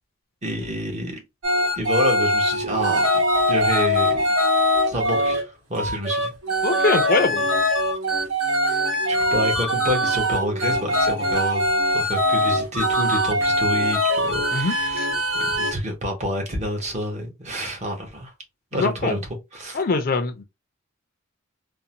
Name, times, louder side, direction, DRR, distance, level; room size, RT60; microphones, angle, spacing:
voice 1, 0.4-1.2 1.8-3.2 3.5-4.2 4.9-6.3 6.7-6.9 8.6-11.7 11.9-15.1 15.4-18.3 18.7-19.2 19.5-19.8, equal, 35° right, 0.8 m, -28 dB
sound 1, 1.4-5.4 5.8-15.7, equal, 80° right, 1.2 m, -22 dB
voice 2, 6.6-7.5 14.5-15.1 18.7-19.2 19.7-20.4, left 3 dB, 45° left, 0.4 m, -23 dB
2.6 x 2.1 x 2.8 m
head